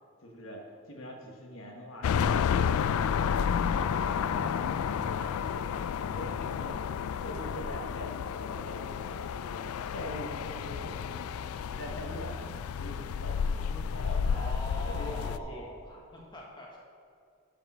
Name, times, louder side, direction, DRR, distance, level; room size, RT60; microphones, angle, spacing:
voice 1, 0.2-3.0 3.7-5.7 6.0-6.8 7.2-9.7 9.9-11.3 11.7-12.4 12.8-15.7, equal, 65° left, 1 dB, 1.4 m, -43 dB
sound 1, 2.0-15.4, left 7 dB, 90° left, 0.3 m, -31 dB
voice 2, 14.3-16.8, left 1 dB, 20° left, -3 dB, 1.4 m, -43 dB
12.5 x 5.1 x 5.5 m, 2.3 s
head